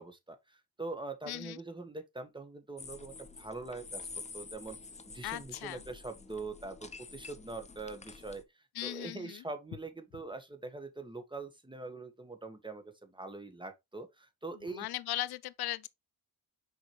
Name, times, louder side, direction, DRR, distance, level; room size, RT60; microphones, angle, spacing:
voice 1, 0.0-4.0 4.3-4.8 5.0-8.4 8.8-14.9, right 3 dB, 15° right, 1.5 m, -43 dB
voice 2, 1.3-1.6 5.2-5.8 8.7-9.4 14.6-15.9, left 15 dB, 80° left, 0.6 m, -38 dB
sound 1, 2.8-8.4, left 4 dB, 20° left, 0.8 m, -48 dB
6.1 x 4.8 x 3.2 m
cardioid pair, 70°, 37 cm